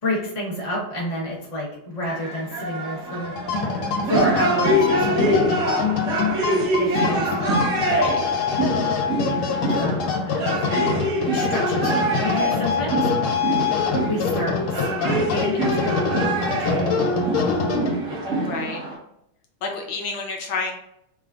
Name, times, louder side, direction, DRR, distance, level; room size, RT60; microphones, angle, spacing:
voice 1, 0.0-3.4 4.0-5.6 6.6-7.6 9.3-10.7 11.2-13.1 14.0-17.4, left 1 dB, 40° left, -3 dB, 0.5 m, -30 dB
sound 1, 2.1-19.0, right 1 dB, 55° right, 0.9 m, -25 dB
sound 2, 3.2-18.2, left 5 dB, 90° left, 1.5 m, -25 dB
voice 2, 7.9-8.2 18.4-18.8 19.6-20.7, left 4 dB, 70° left, 1 dB, 1.3 m, -29 dB
3.6 x 2.4 x 3.3 m, 0.76 s
omnidirectional pair, 2.3 m